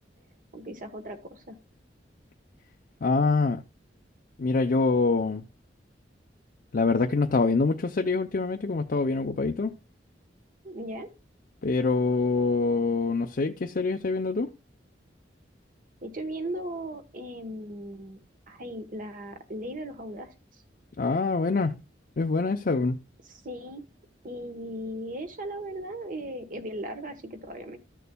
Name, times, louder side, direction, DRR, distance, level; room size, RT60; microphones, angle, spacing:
voice 1, 0.5-1.6 10.6-11.1 16.0-18.2 18.5-20.6 23.2-23.8 24.2-27.8, right 1 dB, 50° right, 1.2 m, -37 dB
voice 2, 3.0-3.6 4.4-5.4 6.7-9.7 11.6-14.5 21.0-21.8 22.2-23.0, left 3 dB, 50° left, 0.5 m, -25 dB
13.5 x 6.8 x 2.2 m
head